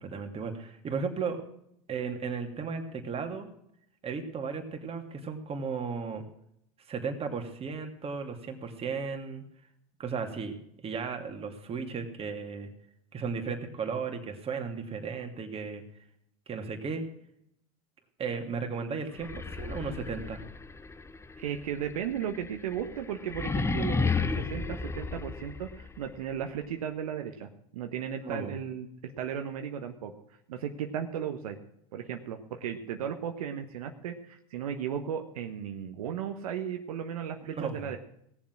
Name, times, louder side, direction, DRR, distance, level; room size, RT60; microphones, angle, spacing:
voice 1, 0.0-1.4 1.9-3.5 4.0-6.2 6.9-9.4 10.0-10.6 10.8-12.7 13.1-15.8 16.5-17.0 18.2-20.4 28.2-28.6 37.5-37.9, right 5 dB, 30° right, 5 dB, 2.7 m, -35 dB
sound 1, 19.1-26.0, left 4 dB, 15° left, 1.0 m, -33 dB
voice 2, 21.4-30.1 30.5-31.6 31.9-38.0, right 8 dB, 80° right, 5 dB, 1.3 m, -35 dB
18.5 x 7.4 x 6.1 m, 0.74 s
hypercardioid pair, 90°, 19 cm